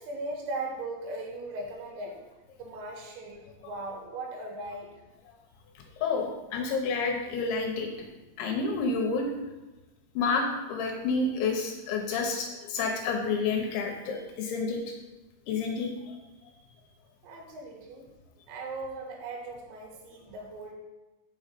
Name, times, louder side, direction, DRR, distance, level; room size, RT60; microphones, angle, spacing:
voice 1, 0.0-2.2 2.6-4.9 17.2-18.0 18.5-20.7, right 2 dB, 85° right, 0 dB, 4.6 m, -38 dB
voice 2, 6.0-8.1 8.4-9.3 10.2-14.8 15.5-15.9, left 4 dB, 75° left, 2 dB, 3.0 m, -29 dB
7.2 x 6.3 x 6.7 m, 1.1 s
omnidirectional pair, 5.9 m